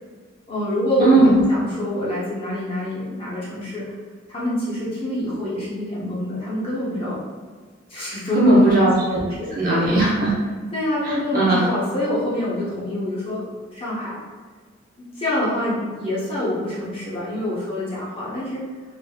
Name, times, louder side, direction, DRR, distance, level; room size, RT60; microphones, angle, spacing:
voice 1, 0.5-3.8 4.3-7.2 7.9-8.4 9.1-9.8 10.7-13.4 13.7-14.2 15.0-18.6, left 1 dB, 30° left, -9 dB, 1.0 m, -26 dB
voice 2, 1.0-1.4 8.3-9.2 9.5-10.3 11.0-11.7, right 1 dB, 45° right, -7 dB, 1.0 m, -17 dB
3.3 x 2.9 x 2.3 m, 1.5 s
head